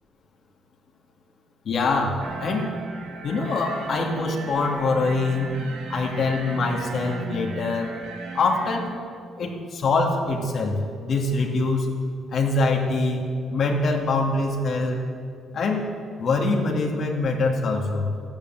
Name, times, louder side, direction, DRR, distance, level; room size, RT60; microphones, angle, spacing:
voice 1, 1.6-2.7 3.2-7.9 8.3-8.9 9.4-11.9 12.3-15.0 15.5-15.9 16.2-18.1, left 3 dB, 60° left, 0 dB, 2.6 m, -24 dB
sound 1, 2.2-8.9, right 3 dB, 90° right, 1.8 m, -36 dB
14.5 x 10.5 x 7.9 m, 2.3 s
cardioid pair, 90°, 0 cm